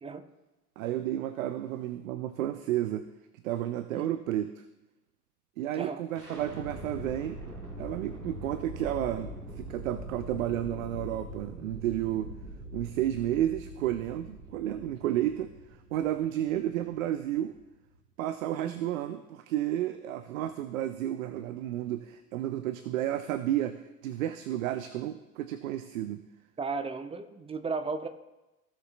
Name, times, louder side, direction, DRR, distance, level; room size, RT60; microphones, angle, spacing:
voice 1, 0.8-3.0 3.4-4.6 5.6-7.4 7.8-12.3 12.7-15.5 15.9-17.6 18.2-26.2, right 12 dB, 65° right, 12 dB, 0.6 m, -32 dB
sound 1, 6.1-18.0, equal, 90° right, 1.2 m, -43 dB
voice 2, 26.6-28.1, right 4 dB, 15° right, 9 dB, 0.6 m, -35 dB
15.5 x 7.0 x 2.4 m, 1.0 s
figure-of-eight pair, 70°, 45 cm